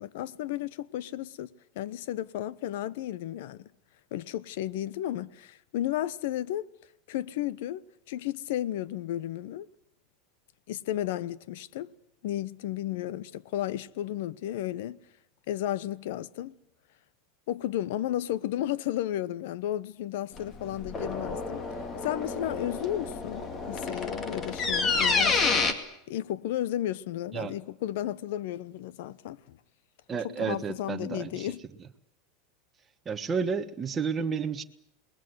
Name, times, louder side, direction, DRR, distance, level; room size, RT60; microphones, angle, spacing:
voice 1, 0.0-1.5 1.7-3.7 4.1-6.6 7.1-7.8 8.1-9.7 10.7-11.9 12.2-15.0 15.5-16.5 17.5-21.6 22.0-25.8 26.1-29.6 30.2-31.6, left 12 dB, 70° left, 0.9 m, -33 dB
sound 1, 20.4-25.7, left 4 dB, 25° left, 2.3 m, -29 dB
voice 2, 30.1-31.5 33.0-34.6, right 5 dB, 20° right, 1.3 m, -31 dB
28.0 x 20.5 x 8.0 m
supercardioid pair, 155°, 0 cm